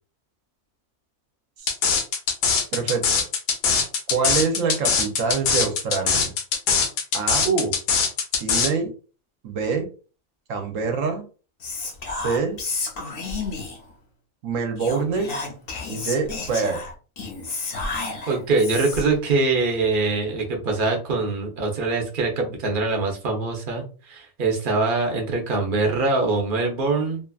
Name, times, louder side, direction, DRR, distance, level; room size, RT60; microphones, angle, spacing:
sound 1, 1.7-8.7, left 6 dB, 90° left, 1.1 m, -21 dB
voice 1, 2.7-3.2 4.1-6.3 7.1-7.5 8.4-8.9 9.4-9.9 10.5-11.3 12.1-12.6 14.4-15.4 15.9-16.8, right 5 dB, 70° right, 5 dB, 1.0 m, -25 dB
Whispering, 11.6-13.9 14.8-19.2, left 3 dB, 55° left, 0.7 m, -31 dB
voice 2, 18.3-27.2, right 3 dB, 50° right, 2 dB, 0.7 m, -23 dB
2.8 x 2.3 x 2.3 m, 0.36 s
omnidirectional pair, 1.5 m